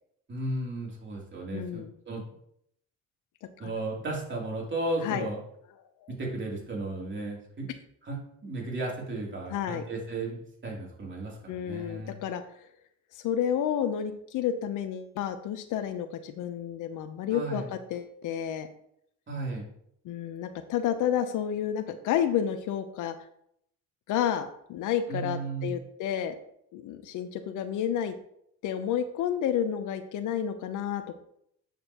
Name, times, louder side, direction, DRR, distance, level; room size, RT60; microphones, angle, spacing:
voice 1, 0.3-2.2 3.6-5.4 6.1-7.7 8.0-12.2 17.3-17.7 19.3-19.6 25.1-25.7, right 2 dB, 40° right, -3 dB, 3.1 m, -34 dB
voice 2, 1.5-1.9 3.6-3.7 5.0-5.3 9.5-9.8 11.5-12.4 13.2-18.7 20.0-23.1 24.1-26.3 26.7-28.1 28.6-31.2, left 9 dB, 85° left, 10 dB, 0.8 m, -30 dB
8.5 x 6.7 x 3.0 m, 0.71 s
cardioid pair, 90°, 30 cm